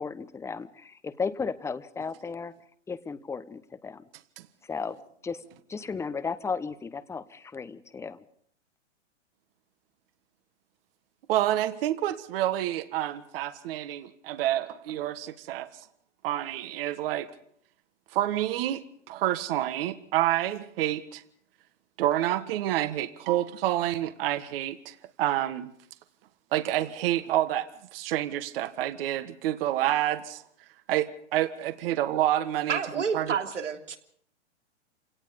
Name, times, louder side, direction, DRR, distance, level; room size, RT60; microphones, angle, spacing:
voice 1, 0.0-2.5 2.9-4.0 4.7-5.0 5.2-5.4 5.7-8.2, left 5 dB, 10° left, 0.9 m, -34 dB
voice 2, 11.3-15.7 16.2-17.3 18.1-21.2 22.0-25.7 26.5-27.7 27.9-30.4 30.9-33.4, right 13 dB, 50° right, 1.6 m, -28 dB
voice 3, 32.7-34.0, right 6 dB, 90° right, 3.3 m, -29 dB
27.5 x 18.0 x 5.2 m
hypercardioid pair, 125°, 35 cm